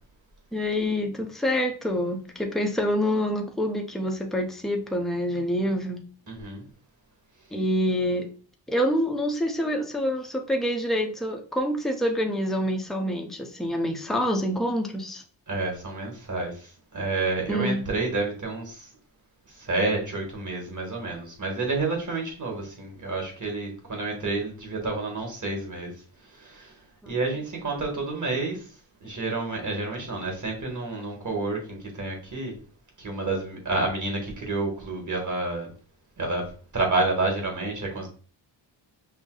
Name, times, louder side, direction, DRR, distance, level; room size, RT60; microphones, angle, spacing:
voice 1, 0.5-6.0 7.5-8.3 8.7-15.2 17.5-17.8 27.0-27.1, equal, ahead, 0.6 m, -26 dB
voice 2, 6.3-6.6 15.5-18.9 19.5-25.9 26.3-26.8 27.1-28.7 29.0-32.5 33.0-35.7 36.2-38.1, right 3 dB, 40° right, 1.7 m, -29 dB
5.5 x 2.0 x 3.8 m
wide cardioid pair, 115°, 46 cm